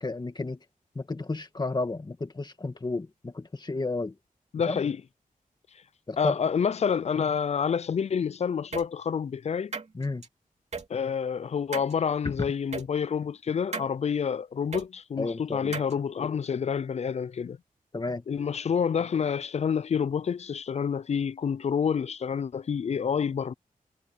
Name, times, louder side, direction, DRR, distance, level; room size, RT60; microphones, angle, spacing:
voice 1, 0.0-0.6 1.0-4.1 4.7-4.8 6.1-6.4 9.9-10.2 12.2-12.5 15.2-15.8 17.9-18.2, left 3 dB, 30° left, 2.0 m, -32 dB
voice 2, 4.5-5.0 6.2-9.7 10.9-17.6 18.3-23.5, left 7 dB, 45° left, 0.4 m, -28 dB
sound 1, 8.7-8.9 9.7-10.3 10.7-10.8 11.7-11.9 12.7-12.9 13.7-13.9 14.7-14.9 15.7-15.9, right 4 dB, 50° right, 3.1 m, -35 dB
wide cardioid pair, 110°, 15 cm